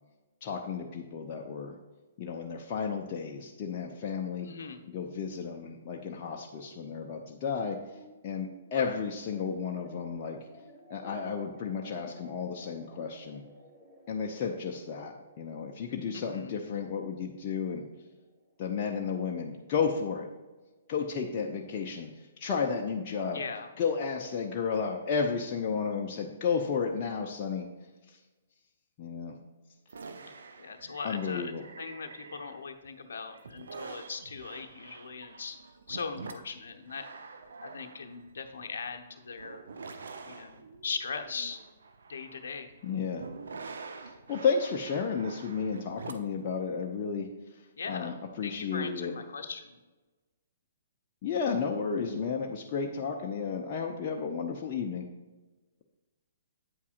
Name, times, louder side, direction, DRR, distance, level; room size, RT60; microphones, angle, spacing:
voice 1, 0.4-1.8 2.2-4.5 4.9-7.8 8.2-10.4 10.9-13.4 14.1-17.8 18.6-20.3 20.9-23.4 23.8-27.7 28.1-28.2 29.0-29.4 31.0-31.6 42.8-43.2 44.3-47.3 47.9-49.1 51.2-55.1, left 6 dB, 35° left, 0 dB, 0.7 m, -32 dB
voice 2, 4.4-4.8 8.7-9.0 16.1-16.5 23.3-23.7 30.3-35.6 35.9-37.1 37.6-39.7 40.2-41.6 42.1-42.7 47.8-49.8, left 5 dB, 60° left, 5 dB, 0.8 m, -40 dB
sound 1, 7.9-20.5, right 1 dB, 5° right, 1.4 m, -56 dB
sound 2, 29.9-32.9 33.3-46.4, right 4 dB, 60° right, 0.7 m, -46 dB
8.7 x 8.3 x 2.5 m, 1.2 s
figure-of-eight pair, 120°, 0 cm